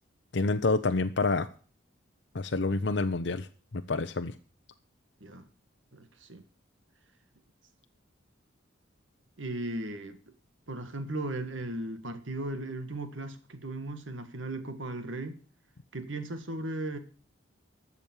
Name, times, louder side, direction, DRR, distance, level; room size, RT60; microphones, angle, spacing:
voice 1, 0.3-1.5 2.3-3.5 3.7-4.3, left 3 dB, 60° left, 0.6 m, -28 dB
voice 2, 5.9-6.4 9.4-10.2 10.7-15.3 15.9-17.0, right 2 dB, 75° right, 1.7 m, -36 dB
12.5 x 7.1 x 7.1 m
head